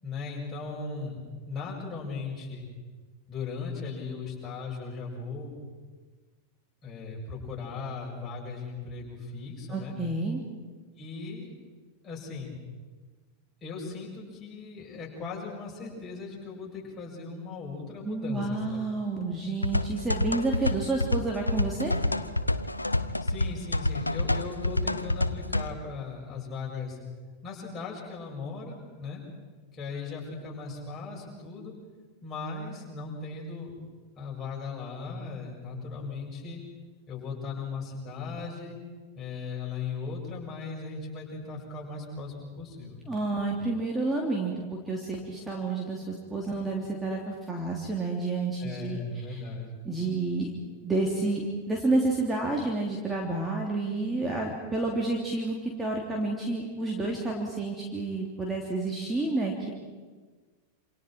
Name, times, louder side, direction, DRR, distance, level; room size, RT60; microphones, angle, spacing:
voice 1, 0.0-2.7 3.3-5.6 6.8-10.0 11.0-11.5 12.0-12.6 13.6-18.8 23.2-27.0 27.4-29.2 29.7-31.7 32.2-33.8 34.1-36.6 37.1-38.8 39.1-43.0 48.6-49.7, left 4 dB, 25° left, -3 dB, 7.9 m, -38 dB
voice 2, 9.7-10.4 18.0-21.9 43.1-49.0 49.3-49.4 49.8-50.5 50.8-59.7, right 2 dB, 10° right, -1 dB, 3.2 m, -30 dB
sound 1, 19.6-25.7, left 2 dB, 85° left, 0.8 m, -28 dB
28.0 x 27.0 x 4.6 m, 1.4 s
figure-of-eight pair, 90°, 0 cm